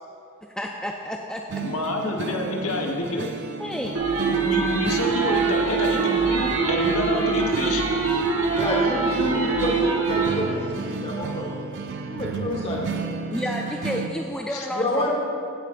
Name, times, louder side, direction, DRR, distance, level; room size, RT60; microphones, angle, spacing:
voice 1, 0.6-1.4 3.6-4.0 13.3-15.1, equal, 5° left, 0 dB, 0.3 m, -30 dB
sound 1, 1.5-14.1, right 4 dB, 55° right, 0.5 m, -33 dB
voice 2, 1.6-3.3 4.2-8.2 14.5-14.7, left 1 dB, 75° left, 1 dB, 1.2 m, -28 dB
sound 2, 3.9-10.3, right 5 dB, 70° right, 1.3 m, -23 dB
voice 3, 8.5-11.6 12.1-13.1 14.7-15.1, left 1 dB, 25° left, -3 dB, 1.5 m, -28 dB
15.5 x 9.0 x 2.5 m, 2.4 s
head